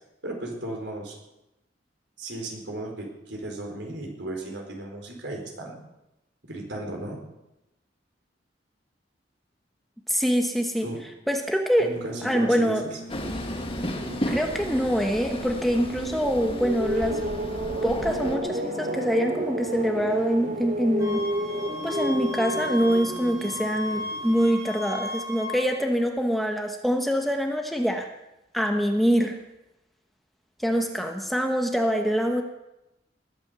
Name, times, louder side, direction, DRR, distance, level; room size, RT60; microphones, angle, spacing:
voice 1, 0.2-1.1 2.2-5.8 6.4-7.2 10.8-11.0 11.8-12.9, right 1 dB, 80° right, 1 dB, 4.5 m, -35 dB
voice 2, 10.1-10.9 11.3-11.9 12.2-12.8 14.3-17.2 17.8-21.2 21.8-28.1 28.5-29.4 30.6-32.4, equal, ahead, 3 dB, 1.1 m, -24 dB
sound 1, 11.9-24.5, right 1 dB, 40° right, 2.5 m, -32 dB
Train, 13.1-18.4, left 1 dB, 30° left, 1.9 m, -34 dB
sound 2, 21.0-25.6, left 2 dB, 20° right, 3.2 m, -35 dB
20.0 x 9.0 x 6.8 m, 0.93 s
head